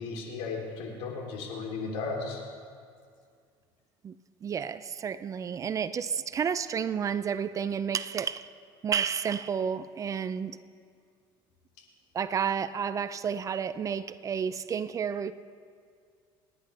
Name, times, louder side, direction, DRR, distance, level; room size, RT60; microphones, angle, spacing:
voice 1, 0.0-2.4, left 4 dB, 75° left, 3.3 m, -35 dB
voice 2, 4.4-8.5 8.8-10.6 12.1-15.3, right 7 dB, 30° right, 0.4 m, -31 dB
28.5 x 10.5 x 3.3 m
cardioid pair, 120°, 11 cm